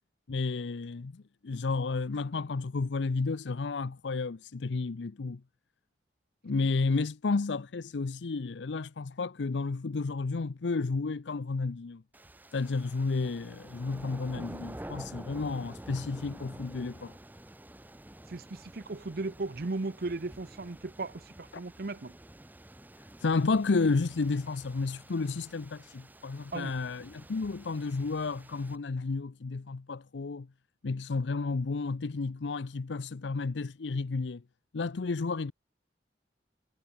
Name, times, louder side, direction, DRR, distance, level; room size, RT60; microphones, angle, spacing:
voice 1, 0.3-5.4 6.4-12.0 12.5-17.1 23.2-30.5 30.8-34.4 34.7-35.5, left 4 dB, 85° left, 0.6 m, -32 dB
sound 1, 12.1-28.8, right 1 dB, 10° right, 0.8 m, -49 dB
voice 2, 18.3-22.2 26.5-26.7, right 3 dB, 55° right, 0.8 m, -36 dB
head